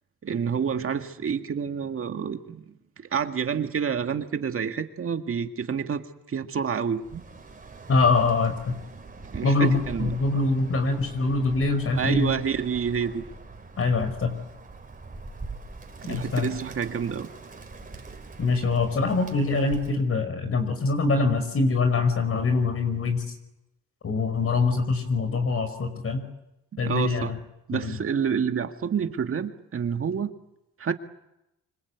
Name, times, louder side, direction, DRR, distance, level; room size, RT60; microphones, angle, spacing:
voice 1, 0.2-2.6 3.1-7.2 9.3-10.2 11.9-13.2 16.0-17.3 26.8-27.3 27.7-30.3 30.8-30.9, right 7 dB, 45° right, 6 dB, 2.0 m, -28 dB
Bird, 7.0-20.1, right 3 dB, 25° right, 4.5 m, -43 dB
voice 2, 7.9-8.8 9.4-12.3 13.8-14.3 16.1-16.5 18.4-23.2 24.0-26.2 26.8-27.4 27.7-28.0, left 3 dB, 50° left, 8 dB, 5.5 m, -24 dB
25.5 x 25.5 x 8.3 m, 0.88 s
cardioid pair, 90°, 30 cm